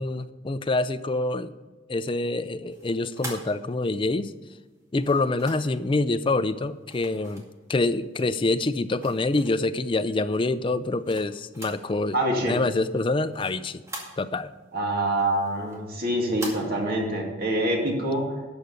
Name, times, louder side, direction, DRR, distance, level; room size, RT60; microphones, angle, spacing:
voice 1, 0.0-1.5 1.9-4.3 4.9-7.4 7.7-12.2 12.5-13.8 14.2-14.5, left 2 dB, 25° left, 12 dB, 0.4 m, -26 dB
sound 1, 2.7-4.1 5.0-5.8 6.9-7.9 8.4-9.8 10.3-11.9 12.2-12.3 12.7-14.6 15.0-16.6, right 1 dB, 15° right, 2.2 m, -42 dB
voice 2, 12.1-12.6 14.7-18.3, right 1 dB, 50° right, 0 dB, 2.2 m, -25 dB
12.5 x 5.1 x 8.2 m, 1.2 s
head